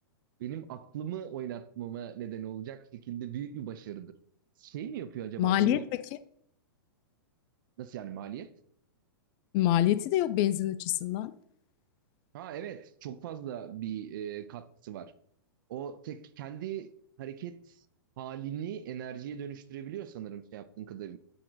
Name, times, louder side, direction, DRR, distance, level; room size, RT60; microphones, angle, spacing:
voice 1, 0.4-4.1 4.6-5.8 7.8-8.5 12.3-15.1 15.7-16.9 17.2-17.8 18.2-21.2, right 10 dB, 60° right, 0.6 m, -39 dB
voice 2, 5.4-5.8 9.5-11.3, left 13 dB, 40° left, 0.4 m, -26 dB
6.7 x 3.7 x 4.0 m
hypercardioid pair, 120°, 12 cm